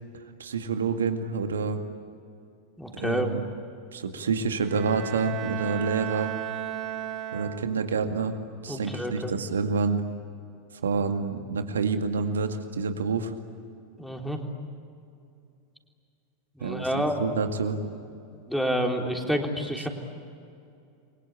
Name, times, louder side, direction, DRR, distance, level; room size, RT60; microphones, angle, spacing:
voice 1, 0.4-1.8 2.9-3.4 3.9-6.3 7.3-8.4 8.6-10.0 10.8-13.3 16.6-17.8, right 5 dB, 70° right, 7 dB, 2.1 m, -28 dB
voice 2, 2.8-3.3 8.7-9.3 14.0-14.4 16.6-17.2 18.3-19.9, equal, ahead, 2 dB, 3.8 m, -28 dB
Bowed string instrument, 4.6-8.0, right 11 dB, 35° right, 1.7 m, -35 dB
29.5 x 23.5 x 8.5 m, 2.5 s
figure-of-eight pair, 85°, 0 cm